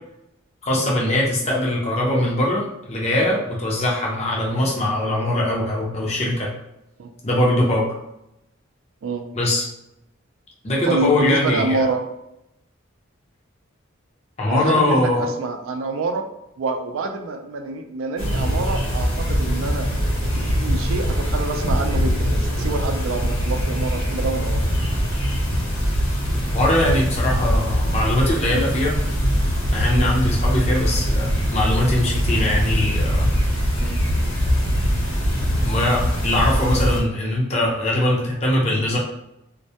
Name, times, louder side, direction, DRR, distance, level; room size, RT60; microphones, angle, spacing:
voice 1, 0.6-6.5 7.2-7.9 9.3-9.6 10.6-11.9 14.4-15.3 26.5-29.0 29.7-33.3 35.6-39.0, left 1 dB, 30° left, -3 dB, 0.5 m, -21 dB
voice 2, 10.8-12.0 14.5-16.3 16.6-19.9 20.4-24.6 29.9-30.1 32.0-32.3 33.8-34.0, right 3 dB, 75° right, 5 dB, 0.3 m, -27 dB
sound 1, 18.2-37.0, equal, 85° left, 0.9 m, -22 dB
2.2 x 2.1 x 2.7 m, 0.85 s
head